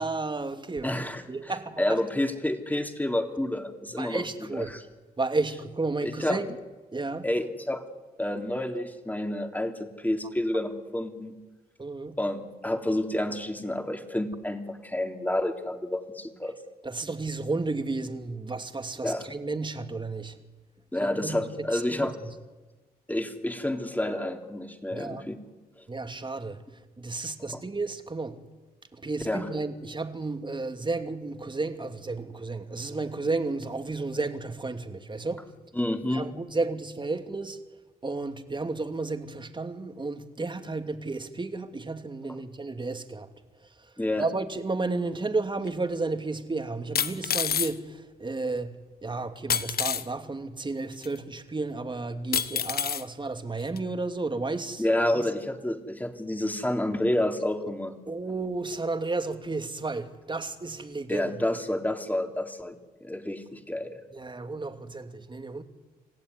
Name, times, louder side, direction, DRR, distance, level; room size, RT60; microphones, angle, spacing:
voice 1, 0.0-0.9 1.3-1.8 4.0-4.7 5.2-6.5 6.9-7.3 11.8-12.2 16.8-20.4 21.0-21.4 21.7-22.1 24.9-25.3 25.9-26.6 27.0-28.4 28.9-35.5 36.1-37.6 38.0-43.3 43.8-43.9 44.2-54.8 55.1-55.2 58.1-61.3 64.1-65.6, right 3 dB, 30° right, 2.7 m, -32 dB
voice 2, 0.8-4.8 6.0-6.4 7.2-7.8 8.2-11.4 12.2-16.5 19.0-19.2 20.9-22.1 23.1-25.4 25.8-25.9 29.3-29.5 35.7-36.3 44.0-44.3 49.1-49.2 54.8-57.9 61.1-62.8 63.0-64.0, left 1 dB, 10° left, 3.3 m, -29 dB
sound 1, 45.7-45.8 47.0-47.7 49.5-50.0 51.0-51.1 52.3-53.0 53.8-53.9, left 8 dB, 70° left, 1.4 m, -27 dB
27.5 x 15.5 x 9.7 m
cardioid pair, 65°, 16 cm